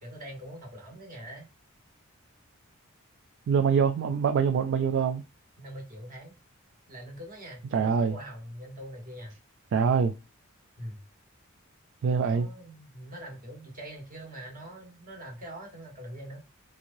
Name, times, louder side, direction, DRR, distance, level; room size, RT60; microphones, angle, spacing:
voice 1, 0.0-1.5 5.6-6.3 6.9-9.3 10.8-11.0 12.2-16.4, right 1 dB, 40° right, 1.2 m, -43 dB
voice 2, 3.5-5.2 7.7-8.1 9.7-10.1 12.0-12.5, right 6 dB, 55° right, 0.3 m, -24 dB
3.6 x 3.1 x 2.5 m
head